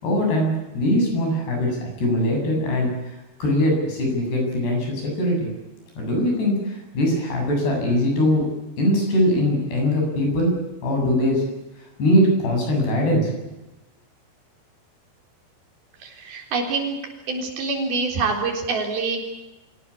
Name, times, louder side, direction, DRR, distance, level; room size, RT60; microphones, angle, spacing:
voice 1, 0.0-5.5 5.9-8.5 8.8-10.6 10.8-11.4 12.0-13.3, left 1 dB, 70° left, 1 dB, 9.8 m, -21 dB
voice 2, 16.0-17.0 17.3-19.2, right 4 dB, 60° right, 2 dB, 5.9 m, -25 dB
25.0 x 17.5 x 8.6 m, 1.0 s
omnidirectional pair, 5.0 m